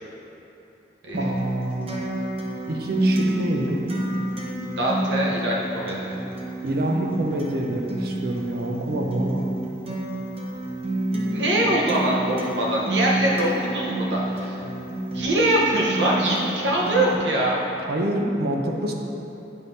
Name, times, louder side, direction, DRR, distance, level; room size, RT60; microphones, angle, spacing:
Acoustic guitar, 1.1-17.2, right 1 dB, 35° right, 0.9 m, -29 dB
voice 1, 1.1-1.9 2.7-3.8 6.6-9.5 17.8-18.9, right 1 dB, 60° right, 1 dB, 0.7 m, -26 dB
voice 2, 4.8-6.2 11.3-14.6 15.1-17.6, right 1 dB, 90° right, -4 dB, 1.0 m, -23 dB
9.3 x 5.6 x 2.7 m, 2.8 s
head